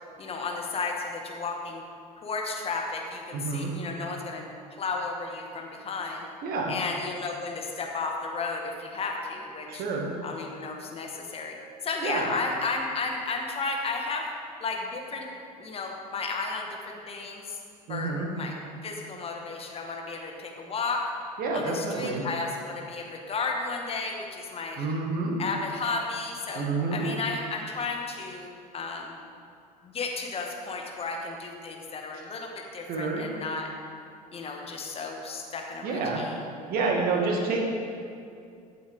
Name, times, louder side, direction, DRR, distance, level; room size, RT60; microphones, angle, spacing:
voice 1, 0.2-1.8 2.2-4.5 4.8-6.2 6.7-9.8 10.2-11.6 11.8-14.3 14.6-15.3 15.6-17.6 17.9-18.6 18.8-21.0 21.5-24.9 25.4-26.6 26.9-29.2 29.8-33.7 34.3-36.4, left 4 dB, 30° left, 1 dB, 1.8 m, -33 dB
voice 2, 3.3-3.7 6.4-6.8 9.7-10.1 12.0-12.3 17.9-18.3 21.4-22.2 24.8-25.4 26.5-27.1 32.9-33.2 35.8-36.2 36.7-37.6, right 3 dB, 50° right, 0 dB, 2.1 m, -28 dB
15.5 x 8.5 x 3.8 m, 2.4 s
figure-of-eight pair, 70°, 20 cm